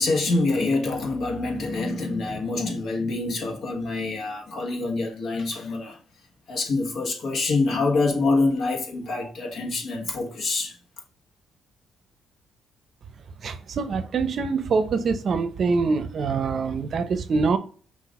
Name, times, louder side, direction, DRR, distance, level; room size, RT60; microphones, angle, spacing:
voice 1, 0.0-6.0 6.5-10.7, left 3 dB, 65° left, 1.2 m, -26 dB
voice 2, 13.4-17.6, right 4 dB, 55° right, 0.6 m, -24 dB
5.8 x 2.5 x 3.6 m
cardioid pair, 75°, 0 cm